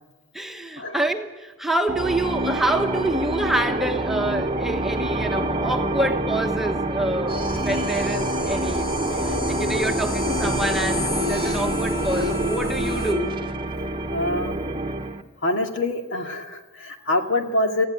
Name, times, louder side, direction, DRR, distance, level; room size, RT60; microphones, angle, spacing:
voice 1, 0.3-8.9 9.3-13.3, right 1 dB, ahead, 3 dB, 1.2 m, -27 dB
sound 1, 1.9-15.2, right 1 dB, 25° right, 1.1 m, -26 dB
sound 2, 7.3-13.1, left 1 dB, 50° left, 4.9 m, -30 dB
voice 2, 14.1-14.5 15.4-17.9, left 2 dB, 65° left, 5 dB, 2.2 m, -25 dB
19.0 x 15.5 x 9.3 m, 1.2 s
head